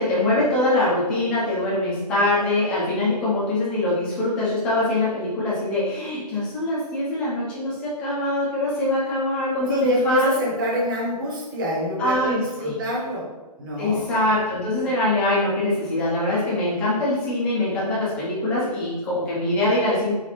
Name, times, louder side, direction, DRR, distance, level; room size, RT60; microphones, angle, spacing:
voice 1, 0.0-10.3 12.0-12.8 13.8-20.1, left 1 dB, 5° left, -7 dB, 0.5 m, -23 dB
voice 2, 9.7-13.3 13.6-14.0, equal, 30° right, -3 dB, 1.1 m, -26 dB
4.1 x 4.0 x 2.9 m, 1.1 s
hypercardioid pair, 165°, 21 cm